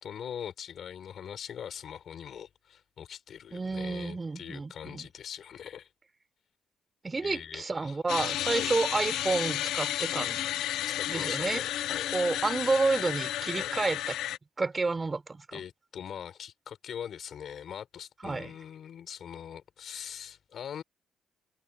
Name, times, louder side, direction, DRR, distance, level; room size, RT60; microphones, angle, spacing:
voice 1, 0.0-5.9 7.2-8.0 8.5-8.7 10.1-10.3 11.0-12.1 13.6-13.7 15.5-20.8, left 8 dB, 60° left, 5.8 m, -42 dB
voice 2, 3.5-5.1 7.0-10.5 11.1-11.6 12.1-14.2 14.6-15.6 18.2-18.5, right 3 dB, 25° right, 4.4 m, -30 dB
sound 1, 8.1-14.4, left 13 dB, 85° left, 0.9 m, -32 dB
cardioid pair, 90°, 0 cm